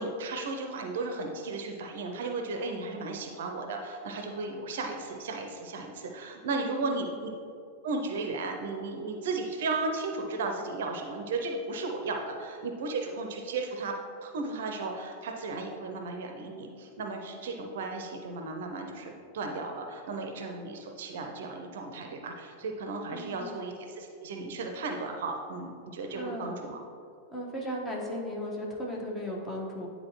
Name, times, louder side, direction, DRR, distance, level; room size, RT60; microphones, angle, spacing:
voice 1, 0.0-7.3 7.8-26.8, right 3 dB, 60° right, 3 dB, 0.6 m, -35 dB
voice 2, 6.8-7.2 23.1-23.6 26.1-26.5 27.3-29.9, equal, 15° left, -2 dB, 1.3 m, -36 dB
9.6 x 4.0 x 3.0 m, 2.4 s
figure-of-eight pair, 90°, 0 cm